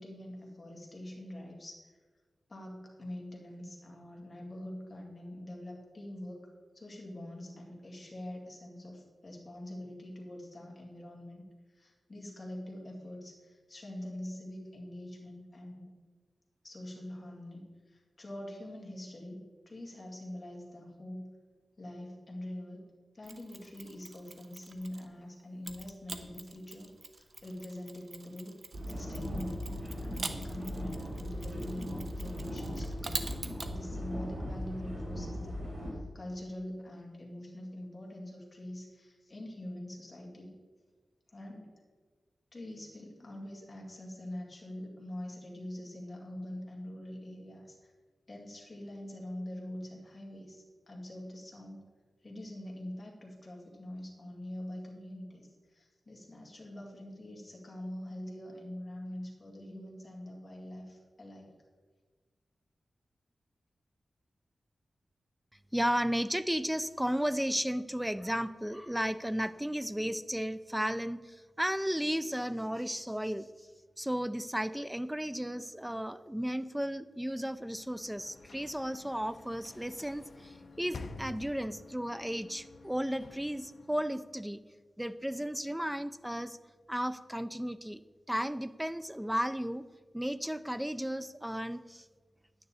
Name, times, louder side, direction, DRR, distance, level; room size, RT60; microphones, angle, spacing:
voice 1, 0.0-1.9 2.5-6.5 6.7-11.4 11.7-15.9 16.6-21.3 21.8-22.8 23.1-28.5 28.9-33.3 33.7-40.5 41.3-41.7 42.5-47.9 48.3-51.9 52.2-61.5, left 1 dB, 30° left, -2 dB, 2.2 m, -44 dB
Mechanisms, 23.2-25.1 25.6-33.7, right 3 dB, 40° right, 0.7 m, -45 dB
sound 1, 28.7-35.9, equal, 60° right, 3.9 m, -38 dB
voice 2, 65.7-73.5 74.0-84.6 85.0-86.6 86.9-88.0 88.3-89.8 90.1-92.0, equal, 5° right, 12 dB, 0.3 m, -34 dB
Sliding door / Slam, 77.5-84.5, left 3 dB, 55° left, 0.7 m, -50 dB
10.5 x 9.5 x 4.1 m, 1.4 s
wide cardioid pair, 165°, 0 cm